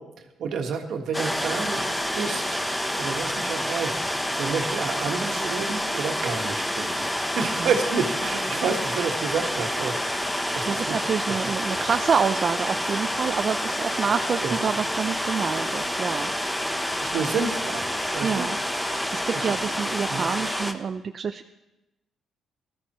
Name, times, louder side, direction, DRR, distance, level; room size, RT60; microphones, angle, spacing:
voice 1, 0.4-1.9 2.1-2.6 3.0-10.2 10.5-11.0 14.4-14.5 17.0-18.5 19.3-19.6 20.1-20.3, right 5 dB, 75° right, 4 dB, 1.6 m, -30 dB
sound 1, 1.1-20.7, equal, 5° left, 0.9 m, -28 dB
voice 2, 7.4-7.8 10.6-16.3 18.2-18.6 18.9-21.5, right 6 dB, 50° right, 7 dB, 0.4 m, -27 dB
17.5 x 13.5 x 3.1 m, 0.99 s
cardioid pair, 90°, 0 cm